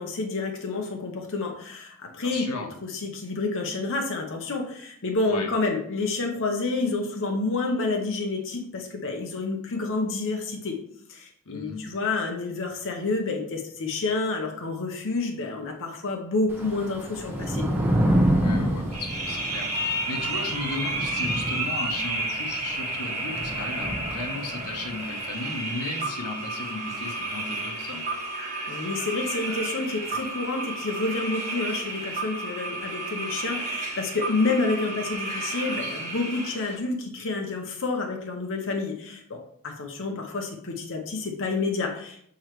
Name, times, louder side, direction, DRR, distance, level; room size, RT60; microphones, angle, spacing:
voice 1, 0.0-2.5 2.9-10.8 11.1-17.7 28.7-42.3, left 3 dB, 60° left, 2 dB, 0.8 m, -29 dB
voice 2, 2.2-2.7 5.2-5.5 11.5-11.9 18.3-28.0, left 3 dB, 85° left, 4 dB, 1.0 m, -35 dB
Thunder / Rain, 16.5-24.9, right 1 dB, 10° right, 1.1 m, -28 dB
sound 1, 18.9-36.8, right 2 dB, 35° right, 1.5 m, -32 dB
7.1 x 4.4 x 3.1 m, 0.67 s
head